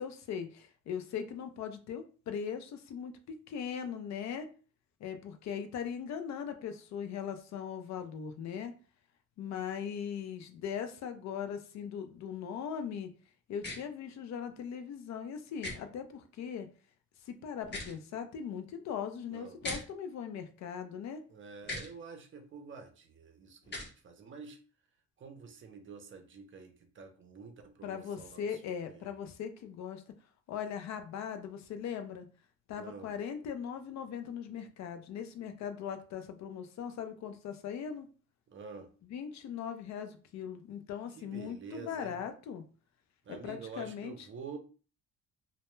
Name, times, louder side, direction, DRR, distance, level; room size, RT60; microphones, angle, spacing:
voice 1, 0.0-3.1 3.5-4.5 5.0-8.7 9.4-13.1 13.5-16.7 17.3-21.2 27.8-30.0 30.5-32.3 32.7-38.1 39.1-42.6 43.4-44.1, left 7 dB, 65° left, 8 dB, 0.4 m, -39 dB
sound 1, 13.6-13.8 15.6-15.8 17.6-18.0 19.6-19.8 21.6-21.9 23.6-23.9, left 2 dB, 35° left, 0.8 m, -38 dB
voice 2, 19.3-19.6 21.3-24.6 25.2-29.1 32.7-33.1 38.5-38.9 41.1-42.2 43.2-44.6, right 5 dB, 40° right, 5 dB, 0.5 m, -48 dB
2.1 x 2.0 x 3.0 m, 0.38 s
cardioid pair, 90°, 30 cm